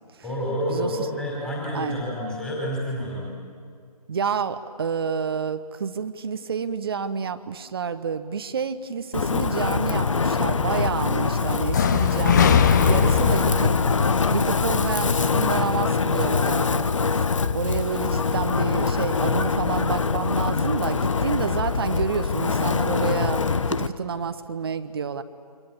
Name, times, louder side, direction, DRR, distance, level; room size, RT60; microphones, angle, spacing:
voice 1, 0.2-3.3, equal, 5° left, -4 dB, 4.8 m, -29 dB
voice 2, 4.1-13.8 14.3-16.9 17.5-25.2, right 6 dB, 40° right, 10 dB, 1.1 m, -29 dB
Wind, 9.1-23.9, left 5 dB, 50° left, 1.0 m, -24 dB
sound 1, 11.7-15.6, left 6 dB, 30° left, 1.1 m, -22 dB
29.5 x 25.5 x 7.3 m, 2.3 s
figure-of-eight pair, 145°, 20 cm